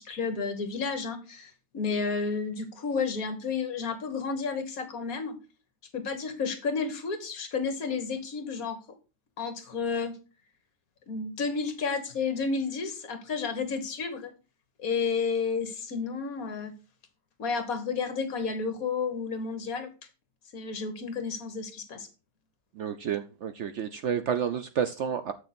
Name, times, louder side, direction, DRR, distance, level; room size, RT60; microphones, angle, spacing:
voice 1, 0.0-5.4 5.9-8.8 9.4-10.2 11.1-14.3 14.8-16.7 17.4-19.9 20.5-22.1, left 5 dB, 55° left, 8 dB, 1.7 m, -31 dB
voice 2, 22.8-25.3, right 8 dB, 75° right, 10 dB, 0.6 m, -30 dB
7.5 x 6.3 x 4.2 m, 0.32 s
omnidirectional pair, 1.8 m